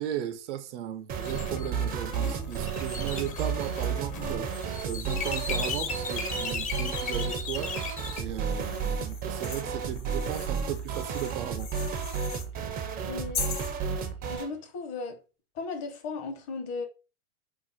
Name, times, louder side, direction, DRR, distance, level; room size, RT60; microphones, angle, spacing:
voice 1, 0.0-7.7 8.2-11.7, right 10 dB, 75° right, 0.6 m, -36 dB
sound 1, 1.1-14.5, right 6 dB, 25° right, 0.4 m, -32 dB
sound 2, 1.2-8.2, left 5 dB, 20° left, 0.5 m, -37 dB
sound 3, 1.8-7.4 8.0-12.5 13.3-13.8, left 6 dB, 80° left, 0.9 m, -43 dB
voice 2, 13.1-13.4 14.3-15.2 15.5-16.9, left 4 dB, 45° left, 1.0 m, -36 dB
2.6 x 2.0 x 3.8 m
hypercardioid pair, 110°, 35 cm